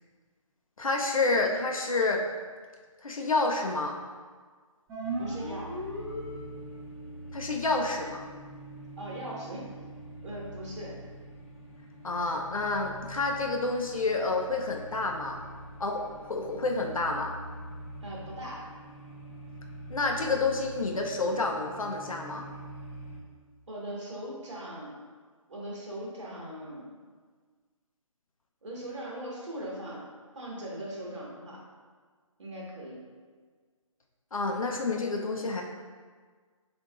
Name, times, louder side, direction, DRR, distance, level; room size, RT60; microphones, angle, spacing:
voice 1, 0.8-2.2 3.0-4.0 7.3-8.2 12.0-15.4 15.8-17.3 19.9-22.4 34.3-35.6, left 3 dB, 80° left, 1 dB, 0.6 m, -29 dB
sound 1, 4.9-6.9, right 1 dB, 15° right, 0.9 m, -36 dB
sound 2, 5.0-23.2, right 1 dB, 25° left, 0.4 m, -45 dB
voice 2, 5.2-5.7 9.0-9.7 10.2-11.0 18.0-18.7 23.7-25.0 25.5-26.9 28.6-30.1 30.3-31.6 32.4-33.1, right 1 dB, 60° right, -4 dB, 1.5 m, -39 dB
7.5 x 2.6 x 2.4 m, 1.5 s
figure-of-eight pair, 150°, 17 cm